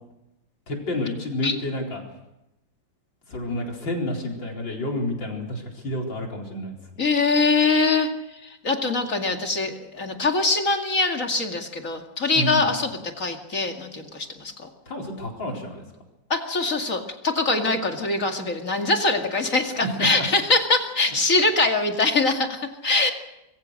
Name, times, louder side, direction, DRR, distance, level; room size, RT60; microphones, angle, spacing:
voice 1, 0.7-2.0 3.3-6.8 12.3-12.7 14.9-15.8 19.8-20.2, left 1 dB, 80° left, 1 dB, 5.1 m, -29 dB
voice 2, 7.0-14.7 16.3-23.1, left 3 dB, 45° left, 4 dB, 2.6 m, -23 dB
25.5 x 22.5 x 6.5 m, 0.91 s
omnidirectional pair, 2.0 m